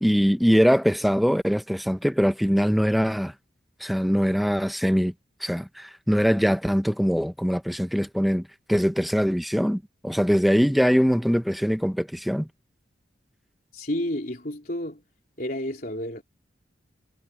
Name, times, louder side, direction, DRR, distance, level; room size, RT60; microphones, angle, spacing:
voice 1, 0.0-3.3 3.8-5.1 5.4-12.5, equal, ahead, 0.8 m, -22 dB
voice 2, 13.7-15.0 15.4-16.2, left 1 dB, 50° left, 3.9 m, -30 dB
head